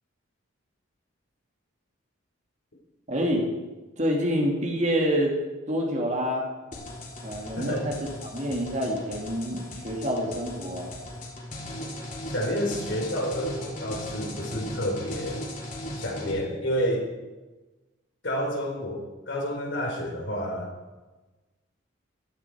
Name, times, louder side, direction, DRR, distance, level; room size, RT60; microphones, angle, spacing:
voice 1, 3.1-3.4 4.0-5.3 5.7-6.5 7.2-7.9 8.2-10.9, equal, 35° right, 0 dB, 2.4 m, -27 dB
sound 1, 6.7-16.3, left 1 dB, 40° left, 3.6 m, -38 dB
voice 2, 7.6-7.9 12.3-15.4 16.0-17.1 18.2-20.7, equal, 60° left, 1 dB, 3.8 m, -29 dB
16.0 x 13.0 x 4.7 m, 1.2 s
head